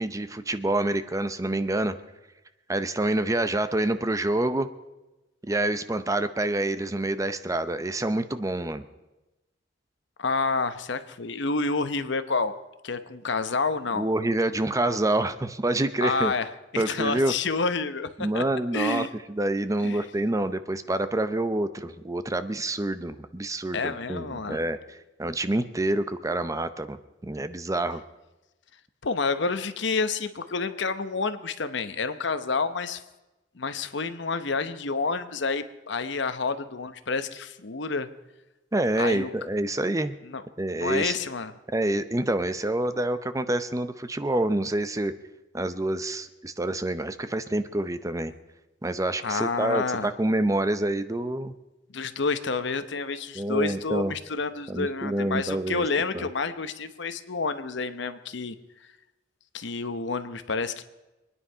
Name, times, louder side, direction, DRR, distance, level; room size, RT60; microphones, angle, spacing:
voice 1, 0.0-2.0 2.7-4.7 5.5-8.8 13.9-16.3 16.8-17.3 18.2-24.8 25.2-27.0 27.3-28.0 38.7-40.1 40.6-41.2 41.7-45.1 45.5-48.3 48.8-51.5 53.4-54.1 54.7-55.8 56.1-56.3, right 1 dB, 15° right, 11 dB, 0.6 m, -27 dB
voice 2, 10.2-12.6 12.8-14.1 16.0-16.5 16.7-18.4 18.7-19.1 19.8-20.0 23.7-24.6 29.0-33.0 33.5-38.1 39.0-39.3 40.2-40.4 40.8-41.5 49.2-50.1 51.9-58.5 59.5-60.8, left 4 dB, 65° left, 11 dB, 0.9 m, -29 dB
24.5 x 9.9 x 5.6 m, 1.0 s
head